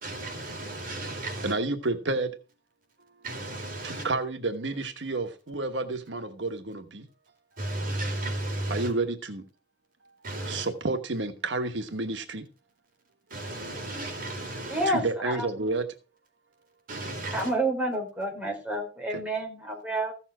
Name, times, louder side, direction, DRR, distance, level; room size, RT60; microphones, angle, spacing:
voice 1, 0.0-1.5 3.2-4.1 7.6-8.9 10.2-10.7 13.3-14.9 16.9-17.5, right 1 dB, 50° right, 4.2 m, -34 dB
voice 2, 1.4-2.3 3.8-7.1 8.7-9.4 10.0-10.1 10.4-12.4 14.8-15.8 19.1-19.2, right 3 dB, 85° right, 1.2 m, -30 dB
voice 3, 14.6-15.5 17.3-20.1, right 1 dB, 10° right, 4.0 m, -29 dB
15.0 x 7.2 x 4.8 m
head